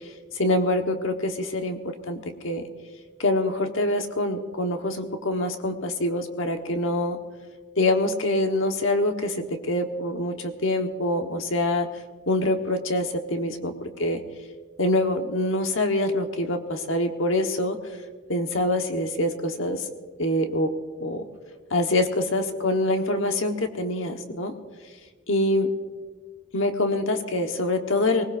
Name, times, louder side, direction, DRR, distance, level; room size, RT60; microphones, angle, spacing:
voice 1, 0.3-2.6 3.2-7.2 7.8-11.9 12.3-14.2 14.8-17.8 18.3-19.8 20.2-20.7 21.0-21.2 21.7-24.5 25.3-25.7 26.5-28.2, left 1 dB, 80° left, 5 dB, 1.3 m, -25 dB
24.5 x 19.5 x 2.6 m, 1.5 s
head